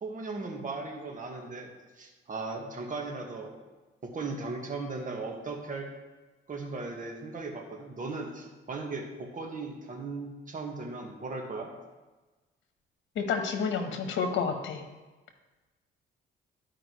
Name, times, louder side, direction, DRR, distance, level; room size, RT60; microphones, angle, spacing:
voice 1, 0.0-1.7 2.0-3.5 4.0-5.9 6.5-11.7, right 3 dB, 40° right, 2 dB, 1.5 m, -37 dB
voice 2, 13.1-14.8, left 5 dB, 70° left, 5 dB, 1.1 m, -30 dB
12.5 x 4.9 x 3.1 m, 1.2 s
cardioid pair, 90°, 20 cm